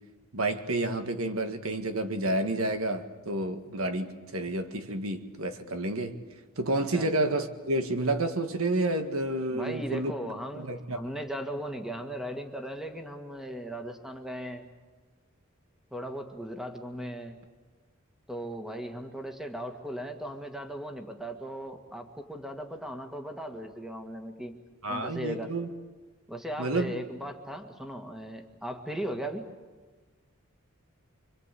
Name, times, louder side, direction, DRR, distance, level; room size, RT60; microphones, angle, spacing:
voice 1, 0.3-6.2 6.6-10.1 10.6-11.0 24.8-25.7 26.6-26.9, right 2 dB, 75° right, 1.8 m, -30 dB
voice 2, 9.5-14.7 15.9-17.4 18.3-24.5 24.9-25.5 26.3-29.4, right 1 dB, ahead, 1.9 m, -37 dB
26.5 x 25.0 x 8.5 m
head